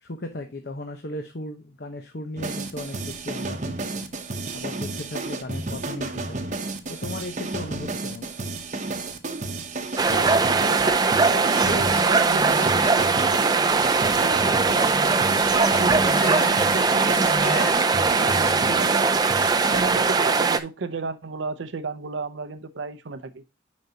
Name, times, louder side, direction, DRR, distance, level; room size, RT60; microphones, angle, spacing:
voice 1, 0.0-4.1 4.5-6.6 6.9-8.3, left 1 dB, 60° left, 0.8 m, -36 dB
sound 1, 2.4-19.8, right 2 dB, 40° right, 0.8 m, -32 dB
sound 2, 10.0-20.6, right 4 dB, 20° right, 0.4 m, -21 dB
voice 2, 10.1-15.0 15.5-19.2 19.7-23.4, right 4 dB, 80° right, 0.6 m, -33 dB
sound 3, 11.6-17.7, equal, 15° left, 2.4 m, -33 dB
9.4 x 5.3 x 2.7 m
head